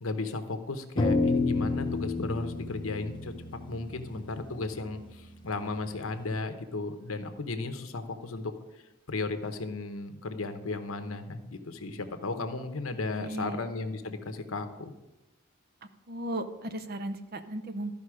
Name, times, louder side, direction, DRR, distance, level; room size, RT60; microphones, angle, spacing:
voice 1, 0.0-3.3 3.7-8.5 9.1-14.9, left 3 dB, 90° left, 8 dB, 0.9 m, -35 dB
sound 1, 1.0-5.5, left 3 dB, 20° left, 0.7 m, -30 dB
voice 2, 13.1-13.7 16.1-18.0, right 1 dB, 50° right, 10 dB, 0.7 m, -36 dB
13.0 x 5.3 x 4.9 m, 1.0 s
head